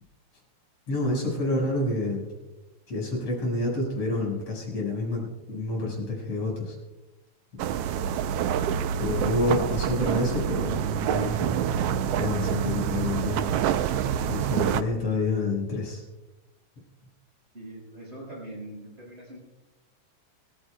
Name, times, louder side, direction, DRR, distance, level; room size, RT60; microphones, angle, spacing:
voice 1, 0.9-2.2 2.9-6.7 9.0-11.6 12.1-13.5 14.3-16.0, left 2 dB, 55° left, -2 dB, 6.4 m, -28 dB
sound 1, 7.6-14.8, right 9 dB, 75° right, 1.4 m, -27 dB
voice 2, 17.5-19.4, right 1 dB, 20° right, -3 dB, 5.8 m, -42 dB
25.5 x 15.0 x 2.3 m, 1.1 s
omnidirectional pair, 3.3 m